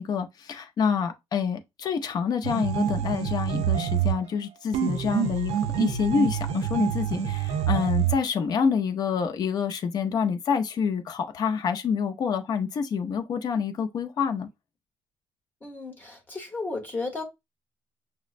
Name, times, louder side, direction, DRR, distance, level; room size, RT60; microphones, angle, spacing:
voice 1, 0.0-14.5, left 6 dB, 35° left, 0.4 m, -27 dB
sound 1, 2.4-4.2 4.7-8.2, right 10 dB, 65° right, 0.6 m, -27 dB
voice 2, 15.6-17.2, left 3 dB, 15° left, 1.0 m, -34 dB
6.1 x 2.0 x 2.4 m
cardioid pair, 175°, 12 cm